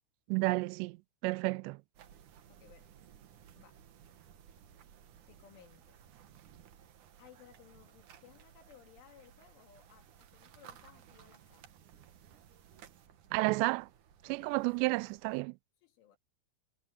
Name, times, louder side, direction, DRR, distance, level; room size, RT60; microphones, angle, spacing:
voice 1, 0.3-1.0 1.2-1.8 13.3-13.9 14.2-15.6, right 25 dB, 90° right, 2.4 m, -31 dB
sound 1, 1.9-15.4, right 9 dB, 65° right, 2.0 m, -58 dB
voice 2, 2.5-3.0 3.6-3.8 5.3-6.0 7.2-11.7 14.3-14.7 15.8-16.2, left 9 dB, 80° left, 4.9 m, -60 dB
omnidirectional pair, 5.5 m